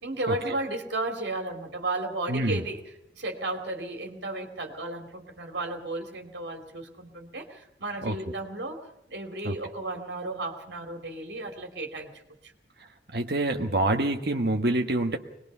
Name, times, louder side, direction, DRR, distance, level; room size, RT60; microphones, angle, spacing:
voice 1, 0.0-2.8 3.1-8.8 9.1-12.1, right 2 dB, 75° right, 3 dB, 2.8 m, -34 dB
voice 2, 2.3-2.6 8.0-8.1 9.4-9.5 13.1-15.2, right 1 dB, 60° right, 4 dB, 1.5 m, -26 dB
22.5 x 20.5 x 5.6 m, 0.83 s
head